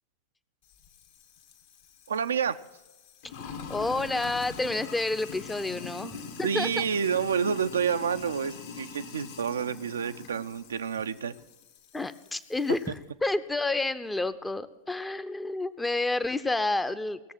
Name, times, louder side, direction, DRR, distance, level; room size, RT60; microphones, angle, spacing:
Sink (filling or washing), 0.7-13.0, left 5 dB, 55° left, 1.2 m, -44 dB
voice 1, 2.1-2.6 5.9-6.1 6.4-11.3, right 7 dB, 70° right, 10 dB, 0.4 m, -29 dB
voice 2, 3.7-6.8 11.9-17.2, left 2 dB, 10° left, 13 dB, 0.6 m, -29 dB
18.5 x 7.2 x 6.1 m, 1.1 s
figure-of-eight pair, 90°, 0 cm